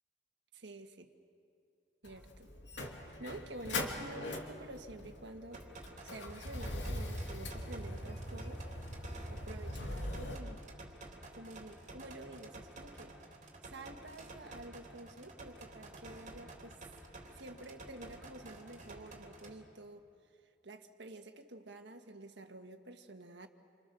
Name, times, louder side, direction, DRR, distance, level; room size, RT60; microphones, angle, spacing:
voice 1, 0.6-1.1 2.0-2.5 3.2-5.6 6.0-8.6 9.3-10.6 11.4-13.2 13.6-16.8 17.3-20.1 20.6-23.5, right 2 dB, 70° right, 6 dB, 1.7 m, -49 dB
Motor vehicle (road), 2.0-10.4, left 1 dB, 80° left, 2.9 m, -41 dB
sound 1, 5.5-19.5, right 2 dB, 45° right, 3.4 m, -52 dB
28.5 x 28.0 x 7.0 m, 2.4 s
head